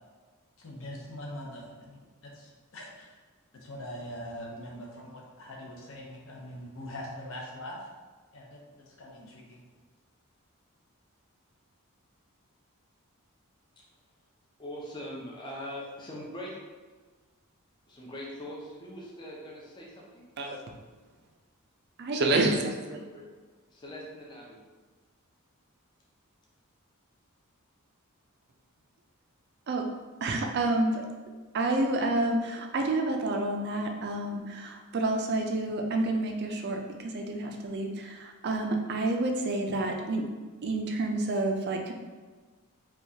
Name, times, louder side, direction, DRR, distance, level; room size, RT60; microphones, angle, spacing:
voice 1, 0.6-3.2 3.5-7.8 8.3-8.6 8.9-9.6, left 1 dB, 60° left, -1 dB, 0.7 m, -42 dB
voice 2, 14.6-16.6 17.9-20.3 22.4-23.2 23.7-24.6, equal, 20° left, -4 dB, 0.5 m, -42 dB
voice 3, 22.0-22.7 29.7-29.9 30.2-31.0 31.5-40.2 40.6-41.9, right 2 dB, 50° right, 3 dB, 0.4 m, -29 dB
4.5 x 2.3 x 2.7 m, 1.4 s
head